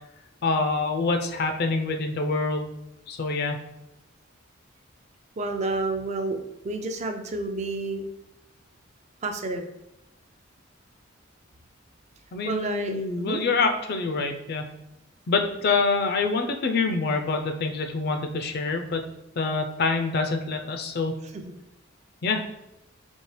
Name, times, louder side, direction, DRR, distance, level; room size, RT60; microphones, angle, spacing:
voice 1, 0.4-2.8 3.1-3.6 12.3-14.7 15.3-19.0 19.4-21.1 22.2-22.4, left 3 dB, 50° left, 5 dB, 0.4 m, -26 dB
voice 2, 5.4-8.1 9.2-9.7 12.5-13.4 21.3-21.5, right 2 dB, 35° right, 5 dB, 0.4 m, -30 dB
4.4 x 2.8 x 3.2 m, 0.89 s
head